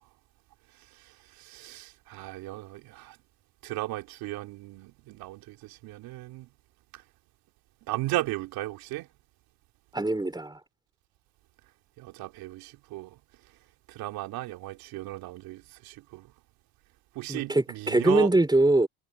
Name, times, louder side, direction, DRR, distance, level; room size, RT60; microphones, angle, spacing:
voice 1, 1.0-3.2 3.6-6.5 6.9-7.0 7.9-9.1 12.0-13.2 13.9-16.3 17.1-18.3, right 17 dB, 80° right, 3.2 m, -36 dB
voice 2, 9.9-10.6 17.3-18.9, right 2 dB, 10° right, 4.0 m, -23 dB
supercardioid pair, 60°, 35 cm